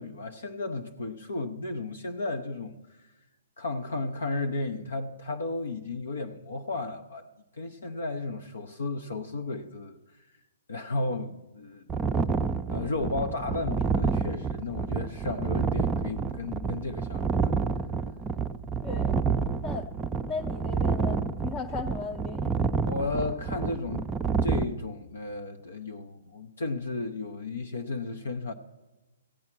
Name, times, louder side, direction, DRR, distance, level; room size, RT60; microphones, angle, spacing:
voice 1, 0.0-3.0 3.6-7.3 7.6-10.0 10.7-12.1 12.7-17.5 22.9-24.1 24.4-28.5, left 3 dB, 80° left, 9 dB, 0.8 m, -34 dB
sound 1, 11.9-24.6, right 5 dB, 10° right, 0.5 m, -29 dB
voice 2, 18.8-19.2 19.6-19.9 20.3-22.6, left 4 dB, 25° left, 4 dB, 0.7 m, -36 dB
15.5 x 8.6 x 6.0 m, 1.1 s
hypercardioid pair, 135°, 0 cm